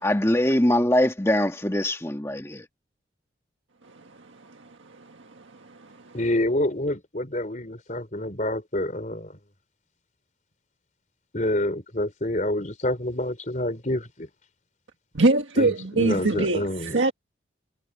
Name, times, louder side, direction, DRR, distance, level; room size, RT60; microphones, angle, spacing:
voice 1, 0.0-2.6, left 1 dB, 15° left, 1.5 m, -22 dB
voice 2, 5.0-6.1 15.1-17.1, right 2 dB, 90° right, 1.6 m, -24 dB
voice 3, 6.1-9.4 11.3-14.3 15.6-17.1, left 1 dB, 40° left, 4.1 m, -27 dB
head